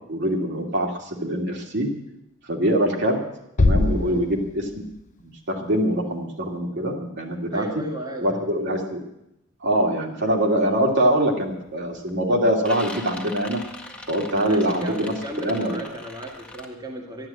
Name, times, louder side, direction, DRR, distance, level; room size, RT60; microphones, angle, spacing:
voice 1, 0.1-1.9 2.5-3.2 3.6-4.8 5.2-7.8 8.2-9.1 9.6-13.6 14.1-15.8, right 1 dB, 55° right, 1 dB, 2.6 m, -24 dB
sound 1, 3.6-5.5, left 2 dB, 35° left, 0.6 m, -23 dB
voice 2, 3.9-4.3 7.5-8.5 14.5-17.3, right 1 dB, 20° right, 0 dB, 1.9 m, -34 dB
sound 2, 10.9-11.2 11.6-12.1 12.4-16.7, left 2 dB, 5° left, 1.7 m, -40 dB
12.0 x 12.0 x 8.6 m, 0.83 s
head